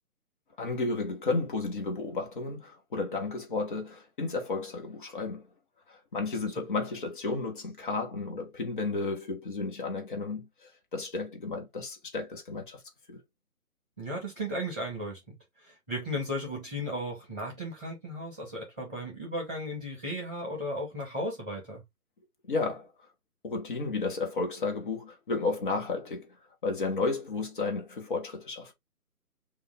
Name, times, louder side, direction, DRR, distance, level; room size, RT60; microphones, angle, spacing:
voice 1, 0.6-5.5 5.9-12.8 13.1-13.2 22.5-22.9 23.4-26.4 26.6-28.7, left 3 dB, 35° left, 1.4 m, -32 dB
voice 2, 14.0-21.8, equal, 5° right, 0.7 m, -35 dB
5.3 x 2.5 x 3.7 m
figure-of-eight pair, 150°, 45 cm